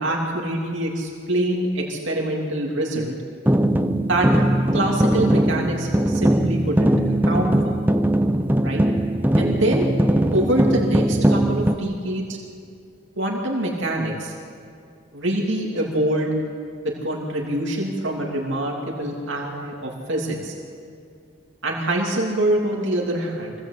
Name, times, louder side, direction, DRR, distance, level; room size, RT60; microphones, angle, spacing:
voice 1, 0.0-3.1 4.1-6.9 7.2-7.8 8.6-8.8 9.4-9.9 10.3-12.4 13.2-14.3 15.1-16.3 16.8-20.5 21.6-23.5, right 1 dB, 60° right, -2 dB, 2.9 m, -25 dB
sound 1, 3.5-11.8, right 1 dB, 10° right, 0.7 m, -20 dB
24.5 x 17.0 x 8.2 m, 2.3 s
head